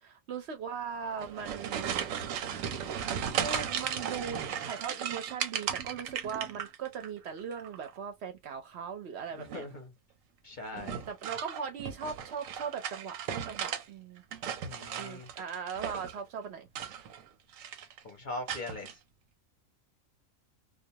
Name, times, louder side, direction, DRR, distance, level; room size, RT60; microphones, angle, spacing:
voice 1, 0.0-2.0 3.3-9.6 10.7-14.2 15.0-16.7, right 6 dB, 65° right, 0.8 m, -39 dB
sound 1, 1.1-7.1 7.4-8.0 9.4-9.8 10.8-13.8 14.2-16.2 16.7-17.3 17.5-18.0 18.5-18.9, right 8 dB, 90° right, 1.0 m, -36 dB
voice 2, 9.4-9.9 10.4-11.1 14.7-15.3 18.0-19.0, left 2 dB, 45° left, 0.7 m, -41 dB
2.4 x 2.2 x 2.7 m
omnidirectional pair, 1.4 m